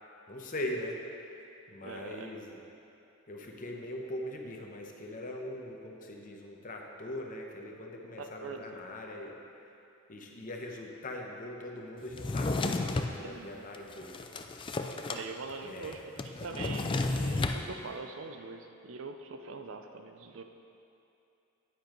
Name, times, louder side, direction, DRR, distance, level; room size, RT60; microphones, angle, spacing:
voice 1, 0.3-1.0 1.7-2.6 3.3-9.4 10.1-14.3 15.6-16.1, left 1 dB, 40° left, 0 dB, 0.9 m, -41 dB
voice 2, 1.8-2.3 8.2-8.6 13.2-13.6 15.1-20.4, right 4 dB, 75° right, 6 dB, 0.6 m, -43 dB
Drawer open or close, 12.1-13.2 13.7-15.2 15.5-15.6 15.8-17.6, left 2 dB, 25° left, 0.3 m, -32 dB
9.6 x 9.2 x 3.1 m, 2.7 s
head